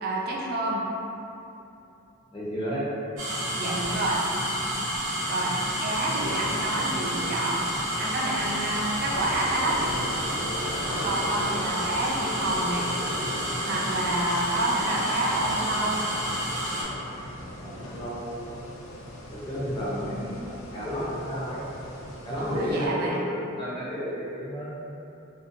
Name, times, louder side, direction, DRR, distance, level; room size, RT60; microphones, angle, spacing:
voice 1, 0.0-0.8 3.6-4.2 5.3-7.6 8.0-9.9 10.5-10.6 11.0-12.9 13.6-16.1 22.4-23.2, right 2 dB, 50° right, -3 dB, 0.4 m, -28 dB
voice 2, 2.3-2.8 17.3-18.5 19.3-21.6 22.2-24.7, equal, 25° left, -9 dB, 0.5 m, -32 dB
sound 1, 3.2-16.8, equal, 75° right, 0.8 m, -30 dB
sound 2, 5.5-22.9, left 1 dB, 80° left, 0.4 m, -39 dB
2.6 x 2.0 x 2.5 m, 2.8 s
head